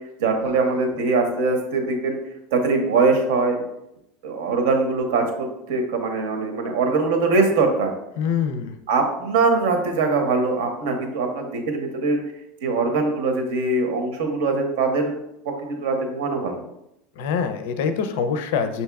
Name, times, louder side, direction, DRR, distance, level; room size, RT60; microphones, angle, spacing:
voice 1, 0.2-2.2 2.5-3.6 4.2-7.9 8.9-12.2 12.6-15.2 15.6-16.6, right 3 dB, 85° right, 4 dB, 0.9 m, -22 dB
voice 2, 8.2-8.7 17.2-18.8, left 6 dB, 70° left, 8 dB, 0.4 m, -24 dB
6.2 x 2.8 x 2.3 m, 0.81 s
supercardioid pair, 175°, 0 cm